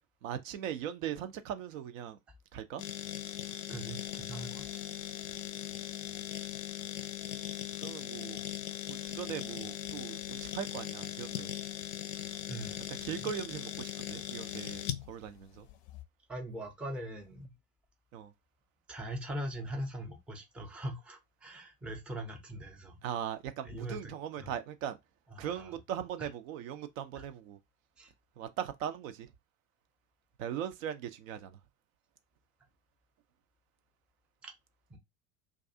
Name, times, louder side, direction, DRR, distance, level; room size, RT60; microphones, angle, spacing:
voice 1, 0.2-2.2 2.5-2.8 5.8-5.9 7.8-8.4 8.9-11.5 12.9-15.7 18.1-18.3 23.0-25.0 25.4-27.6 28.4-29.3 30.4-31.6, right 9 dB, 60° right, 0.5 m, -39 dB
sound 1, 2.8-16.0, left 12 dB, 50° left, 0.5 m, -39 dB
voice 2, 3.7-4.7 12.5-13.3 16.3-17.6 18.9-23.0 23.6-24.1 24.4-24.5 25.3-25.8 26.2-26.3 27.1-27.2 28.0-28.1 34.4-34.5 34.9-35.0, right 1 dB, 5° right, 0.5 m, -41 dB
2.3 x 2.3 x 2.6 m
figure-of-eight pair, 75°, 45 cm